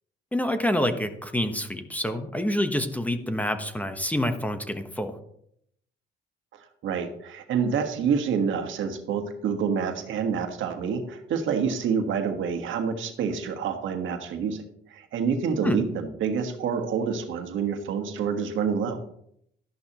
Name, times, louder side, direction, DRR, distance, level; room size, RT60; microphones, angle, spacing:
voice 1, 0.3-5.2 15.6-15.8, left 1 dB, 5° left, 7 dB, 1.1 m, -27 dB
voice 2, 6.5-19.0, right 6 dB, 75° right, 6 dB, 1.5 m, -28 dB
13.0 x 11.0 x 3.0 m, 0.72 s
cardioid pair, 90°, 20 cm